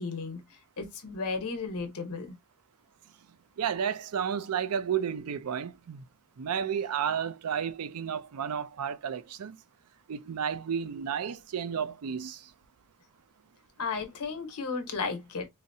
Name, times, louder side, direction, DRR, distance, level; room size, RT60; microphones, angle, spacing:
voice 1, 0.0-2.4 13.8-15.5, left 4 dB, 90° left, 1.0 m, -34 dB
voice 2, 3.6-6.0 6.4-9.6 10.1-12.5, right 8 dB, 85° right, 0.4 m, -32 dB
4.0 x 2.0 x 2.6 m
head